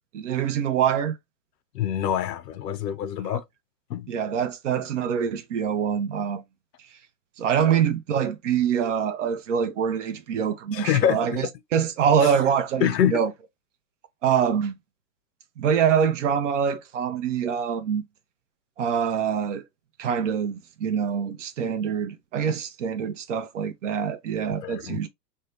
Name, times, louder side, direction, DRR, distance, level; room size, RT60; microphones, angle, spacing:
voice 1, 0.1-1.1 3.3-3.4 4.1-6.4 7.4-13.3 14.2-14.7 15.6-18.0 18.8-19.6 20.0-25.1, right 8 dB, 50° right, 0.5 m, -25 dB
voice 2, 1.7-3.4 3.9-4.1 10.7-11.4 12.2-12.3 12.8-13.1 24.6-25.0, left 10 dB, 75° left, 0.6 m, -25 dB
2.7 x 2.2 x 3.0 m
hypercardioid pair, 135°, 50 cm